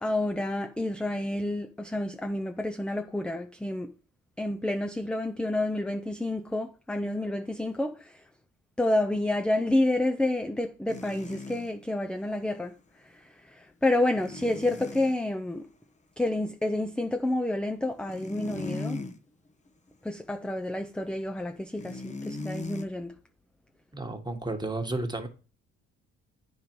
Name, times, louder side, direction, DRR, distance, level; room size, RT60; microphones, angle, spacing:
voice 1, 0.0-3.9 4.4-8.0 8.8-12.7 13.8-15.7 16.2-19.0 20.0-23.1, left 1 dB, 5° left, 0.6 m, -29 dB
sound 1, 10.9-11.7 14.2-15.1 17.9-19.2 19.7-19.9 21.8-22.8, left 3 dB, 25° left, 0.9 m, -38 dB
voice 2, 23.9-25.3, right 2 dB, 15° right, 1.5 m, -32 dB
9.2 x 5.3 x 4.6 m
cardioid pair, 90°, 30 cm